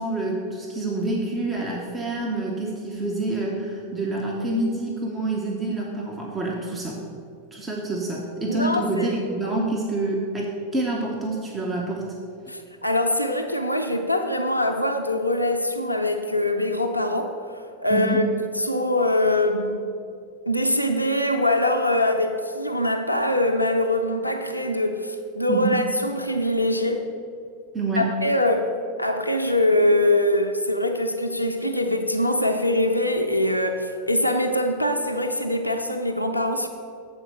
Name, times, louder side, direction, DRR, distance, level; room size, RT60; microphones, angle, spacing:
voice 1, 0.0-7.0 7.5-12.1 17.9-18.2 25.5-25.8 27.7-28.1, right 2 dB, 15° right, -2 dB, 1.0 m, -27 dB
voice 2, 8.5-9.1 12.5-18.2 18.6-19.9 20.5-27.1 28.0-28.7 29.0-36.7, left 1 dB, 90° left, 3 dB, 0.4 m, -23 dB
7.5 x 4.6 x 6.6 m, 2.4 s
figure-of-eight pair, 90°, 0 cm